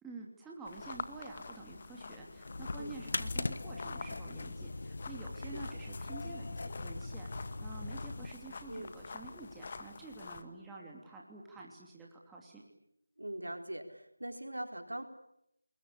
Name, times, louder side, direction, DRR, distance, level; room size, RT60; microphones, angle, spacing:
voice 1, 0.0-12.6, right 3 dB, 5° right, -3 dB, 2.8 m, -49 dB
sound 1, 0.6-10.4, left 4 dB, 35° left, 1.8 m, -48 dB
sound 2, 2.4-8.3, left 2 dB, 55° left, 1.5 m, -40 dB
voice 2, 8.7-9.0 13.2-15.0, right 1 dB, 90° right, 5 dB, 4.2 m, -42 dB
27.5 x 21.5 x 8.5 m, 0.80 s
figure-of-eight pair, 165°, 0 cm